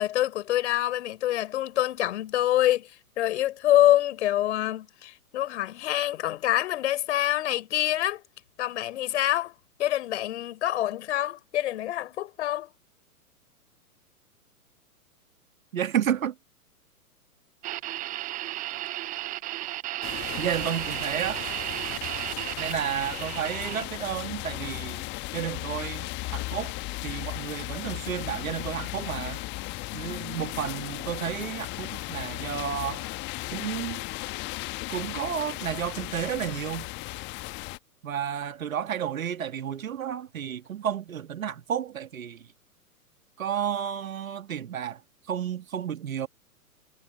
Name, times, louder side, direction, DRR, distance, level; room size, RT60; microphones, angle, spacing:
voice 1, 0.0-8.2 8.6-9.5 9.8-12.7, left 13 dB, 50° left, 4.7 m, -26 dB
voice 2, 15.7-16.3 20.4-21.4 22.6-25.0 25.3-26.7 27.0-29.4 29.9-33.1 33.5-34.0 34.9-36.9 38.0-42.4 43.4-45.0 45.3-46.3, right 9 dB, 60° right, 2.1 m, -31 dB
sound 1, 17.6-23.8, right 16 dB, 20° right, 0.9 m, -34 dB
sound 2, 20.0-37.8, left 22 dB, 25° left, 1.4 m, -36 dB
figure-of-eight pair, 110°, 45 cm